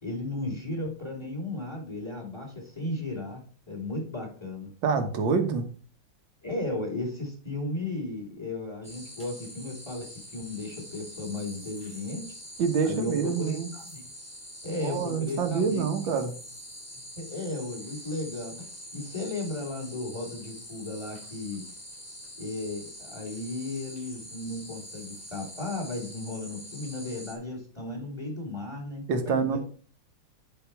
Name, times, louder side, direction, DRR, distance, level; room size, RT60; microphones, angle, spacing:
voice 1, 0.0-3.4 3.7-4.7 6.4-10.1 10.3-12.3 12.8-14.0 14.6-16.2 17.1-18.7 18.9-21.6 22.4-29.6, left 2 dB, 15° left, 1 dB, 3.0 m, -35 dB
voice 2, 4.8-5.6 12.6-13.7 14.8-16.3 29.1-29.6, right 5 dB, 75° right, 6 dB, 1.9 m, -26 dB
sound 1, 8.8-27.3, equal, 5° right, 2.5 m, -45 dB
8.9 x 5.1 x 4.6 m, 0.40 s
omnidirectional pair, 2.1 m